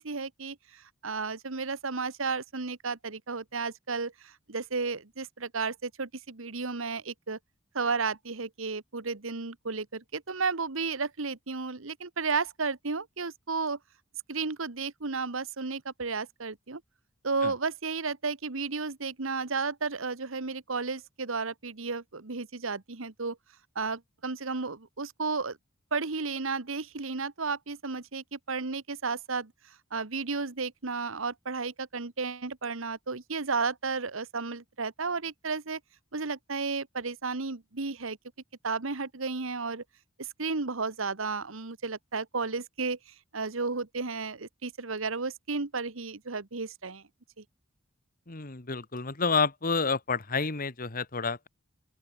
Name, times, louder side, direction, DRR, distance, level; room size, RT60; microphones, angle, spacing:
voice 1, 0.0-7.4 7.7-13.8 14.3-16.8 17.2-23.4 23.7-25.6 25.9-29.5 29.9-35.8 36.1-38.2 38.6-39.8 40.2-43.0 43.3-47.0 47.4-47.5, right 4 dB, 85° right, 1.5 m, -33 dB
voice 2, 48.3-51.5, left 4 dB, 45° left, 1.9 m, -29 dB
open air
head